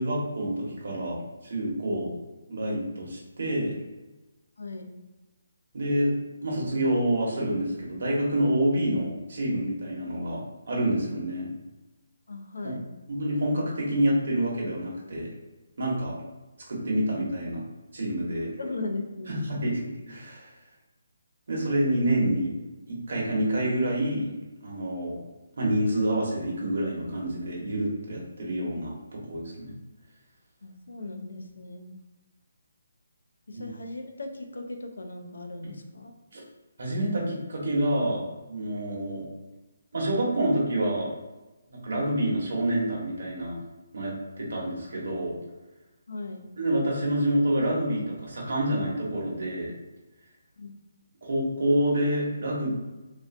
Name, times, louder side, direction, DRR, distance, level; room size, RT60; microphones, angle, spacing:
voice 1, 0.0-2.1 2.5-3.8 5.7-6.1 6.4-11.5 12.6-12.7 13.1-15.3 15.8-16.1 16.7-17.6 17.9-18.5 19.3-19.8 20.1-20.5 21.5-22.5 22.9-24.3 24.6-25.2 25.6-29.7 33.5-33.7 35.6-35.7 36.3-36.4 36.8-39.3 39.9-41.1 41.7-43.6 43.9-45.4 46.6-49.7 51.2-52.7, right 1 dB, 45° right, -4 dB, 0.9 m, -27 dB
voice 2, 4.6-4.9 12.3-12.8 18.6-19.5 30.6-32.0 33.5-36.1 46.1-46.5 50.6-50.7, left 2 dB, 80° left, 4 dB, 0.5 m, -37 dB
3.3 x 2.5 x 2.5 m, 1.1 s
hypercardioid pair, 180°, 0 cm